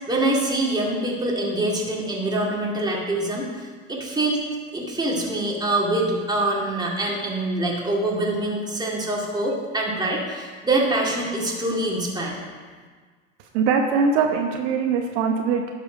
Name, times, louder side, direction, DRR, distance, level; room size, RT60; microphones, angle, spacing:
voice 1, 0.1-4.4 4.7-12.4, right 2 dB, 10° right, -3 dB, 2.1 m, -25 dB
voice 2, 13.5-15.7, right 5 dB, 65° right, 3 dB, 1.1 m, -22 dB
12.0 x 4.7 x 5.0 m, 1.5 s
hypercardioid pair, 95°, 38 cm